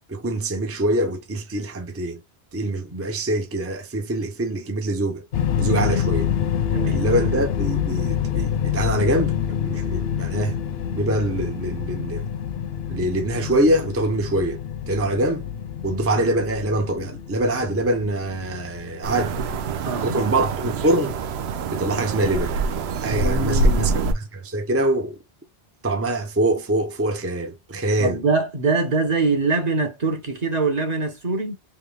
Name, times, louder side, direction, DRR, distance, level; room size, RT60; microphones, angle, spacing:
voice 1, 0.1-2.2 2.5-5.3 5.6-6.3 6.9-10.5 10.9-12.2 12.9-14.6 14.9-15.4 15.8-19.4 20.0-21.2 21.7-22.5 23.0-25.2 25.8-28.2, right 1 dB, 20° right, 0.3 m, -24 dB
sound 1, 5.3-19.3, left 9 dB, 75° left, 0.8 m, -27 dB
voice 2, 6.7-7.0 19.8-20.2 23.1-24.0 28.0-31.6, right 3 dB, 40° right, 1.1 m, -24 dB
sound 2, 19.0-24.1, right 3 dB, 90° right, 0.8 m, -25 dB
3.5 x 2.5 x 3.2 m
omnidirectional pair, 1.0 m